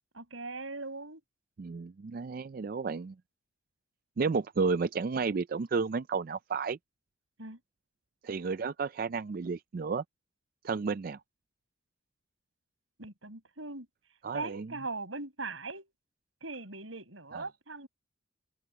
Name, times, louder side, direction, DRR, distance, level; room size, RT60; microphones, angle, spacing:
voice 1, 0.1-1.2 7.4-7.6 13.0-13.9 14.3-15.9 16.4-17.9, right 3 dB, 80° right, 6.3 m, -40 dB
voice 2, 1.6-3.1 4.2-6.8 8.2-10.0 10.6-11.2 14.2-14.7 17.3-17.4, right 5 dB, 45° right, 0.4 m, -32 dB
head